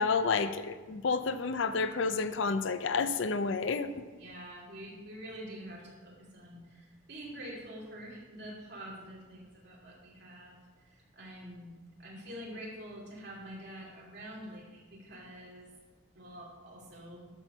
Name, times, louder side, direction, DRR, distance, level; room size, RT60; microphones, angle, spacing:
voice 1, 0.0-4.0, left 4 dB, 65° left, 11 dB, 0.5 m, -30 dB
voice 2, 4.2-10.6 10.9-11.7 12.0-15.7 16.1-17.3, equal, 55° right, -3 dB, 2.5 m, -46 dB
12.5 x 4.5 x 5.6 m, 1.3 s
head